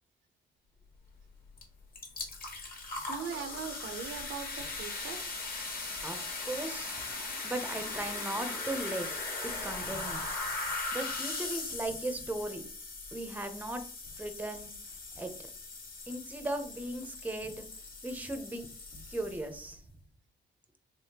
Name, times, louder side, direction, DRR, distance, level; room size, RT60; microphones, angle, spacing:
sound 1, 1.6-1.7 1.9-19.7, left 3 dB, 45° left, 1.4 m, -39 dB
voice 1, 2.7-5.2, right 7 dB, 75° right, 8 dB, 0.6 m, -41 dB
voice 2, 6.0-7.0 7.4-9.1 9.4-10.2 10.6-12.6 13.1-13.8 14.2-14.7 15.2-15.3 16.1-17.7 18.0-18.7 19.1-19.8, right 1 dB, 10° right, 7 dB, 0.6 m, -37 dB
3.5 x 3.1 x 2.8 m, 0.43 s
cardioid pair, 90°, 20 cm